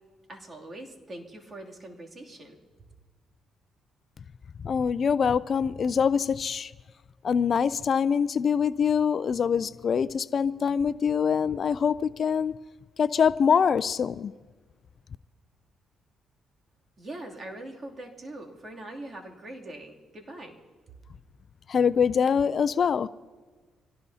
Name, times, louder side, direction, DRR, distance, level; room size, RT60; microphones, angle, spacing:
voice 1, 0.3-2.6 17.0-20.5, right 1 dB, 35° right, 0 dB, 2.8 m, -42 dB
voice 2, 4.6-6.7 7.2-12.5 13.0-14.3 21.7-23.1, left 7 dB, 50° left, 16 dB, 0.4 m, -24 dB
26.0 x 18.0 x 2.8 m, 1.4 s
cardioid pair, 90°, 0 cm